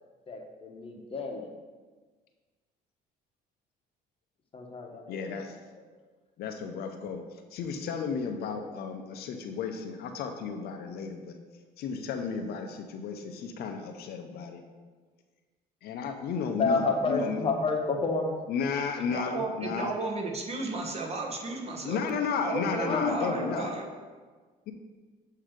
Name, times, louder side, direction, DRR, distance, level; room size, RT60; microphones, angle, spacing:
voice 1, 0.3-1.5 4.5-5.4 5.8-5.9 16.5-18.4 22.8-23.8, left 3 dB, 35° left, 2 dB, 0.9 m, -30 dB
voice 2, 5.1-5.6 6.4-7.2 7.5-11.4 11.8-14.6 15.8-17.4 18.5-19.9 21.8-23.7 24.7-24.8, left 5 dB, 70° left, 5 dB, 0.6 m, -33 dB
voice 3, 19.0-22.0 22.4-23.8, right 3 dB, 40° right, 1 dB, 1.0 m, -34 dB
7.4 x 2.8 x 5.0 m, 1.4 s
cardioid pair, 110°, 17 cm